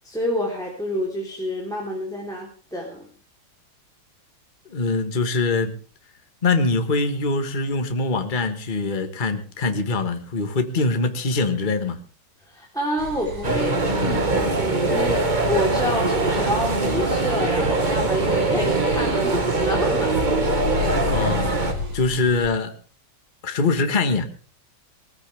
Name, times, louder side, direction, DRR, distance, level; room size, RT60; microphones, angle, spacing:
voice 1, 0.0-3.1 12.5-13.7 14.0-20.2, equal, ahead, 3.5 m, -28 dB
voice 2, 4.7-5.7 6.4-12.0 21.1-21.5 21.9-22.7 23.4-24.3, left 3 dB, 25° left, 1.4 m, -23 dB
sound 1, 13.0-22.4, left 3 dB, 80° right, 4.5 m, -32 dB
sound 2, 13.4-21.7, right 3 dB, 25° right, 1.6 m, -22 dB
19.5 x 15.0 x 3.5 m
omnidirectional pair, 2.3 m